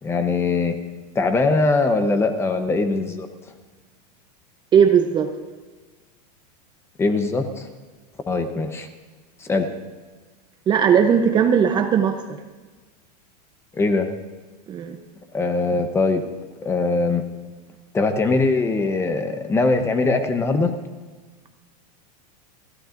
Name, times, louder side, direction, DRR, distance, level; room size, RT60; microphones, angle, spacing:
voice 1, 0.0-0.7 1.1-3.3 7.0-7.7 8.3-8.9 9.4-9.7 13.7-14.1 15.3-16.2 16.6-17.2 17.9-20.7, left 3 dB, 10° left, 7 dB, 0.8 m, -21 dB
voice 2, 4.7-5.3 10.7-12.4 14.7-15.0, right 7 dB, 20° right, 7 dB, 0.7 m, -18 dB
29.5 x 12.0 x 2.6 m, 1.3 s
supercardioid pair, 155°, 21 cm